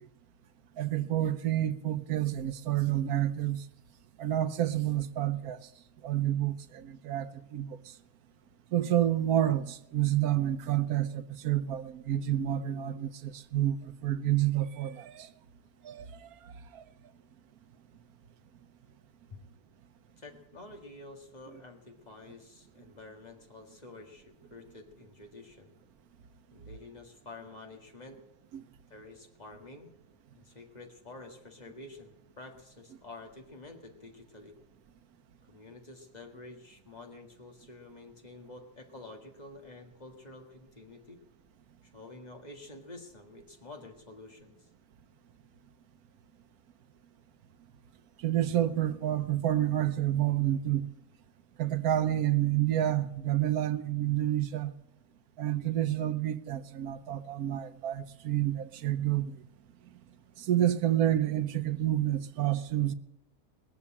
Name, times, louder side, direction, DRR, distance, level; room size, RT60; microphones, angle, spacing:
voice 1, 0.8-3.6 4.2-5.6 6.0-7.8 8.7-15.3 15.8-16.1 16.7-16.8 28.5-28.6 48.2-50.9 51.6-54.7 55.4-59.3 60.4-62.9, right 12 dB, 80° right, 1.2 m, -29 dB
voice 2, 20.2-25.7 26.5-28.2 28.9-29.9 30.4-34.5 35.5-41.2 41.8-44.7, left 2 dB, 30° left, 1.9 m, -49 dB
20.5 x 7.0 x 8.6 m
omnidirectional pair, 1.5 m